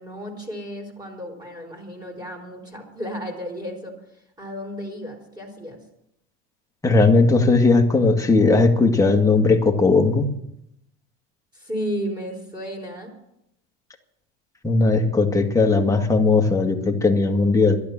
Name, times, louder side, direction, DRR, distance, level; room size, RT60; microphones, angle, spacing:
voice 1, 0.0-5.8 11.5-13.1, equal, 10° right, 1 dB, 4.1 m, -33 dB
voice 2, 6.8-10.3 14.6-17.8, left 3 dB, 10° left, 2 dB, 1.8 m, -18 dB
12.0 x 11.5 x 7.2 m, 0.80 s
supercardioid pair, 115°, 33 cm